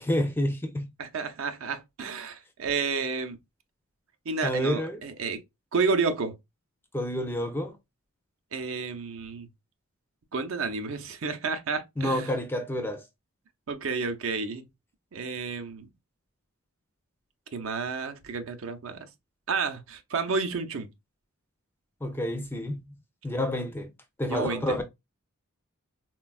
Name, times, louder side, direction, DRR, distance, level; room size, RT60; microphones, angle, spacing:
voice 1, 0.0-0.9 4.4-5.0 6.9-7.8 12.0-13.0 22.0-23.0 23.2-23.9 24.2-24.8, left 1 dB, 10° left, 0.4 m, -29 dB
voice 2, 1.0-3.4 4.3-5.4 5.7-6.4 8.5-9.5 10.3-12.3 13.7-14.6 15.1-15.9 17.5-19.1 19.5-20.9 24.3-24.8, right 4 dB, 65° right, 0.6 m, -31 dB
4.0 x 2.2 x 2.3 m
head